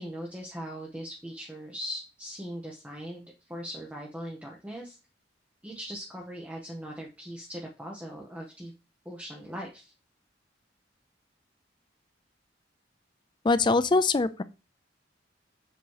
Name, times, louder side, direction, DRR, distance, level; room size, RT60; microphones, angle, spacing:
voice 1, 0.0-5.0 5.6-8.7 9.0-9.9, equal, 5° right, 0.9 m, -40 dB
voice 2, 13.4-14.4, left 3 dB, 25° left, 0.3 m, -23 dB
7.0 x 3.0 x 4.7 m
head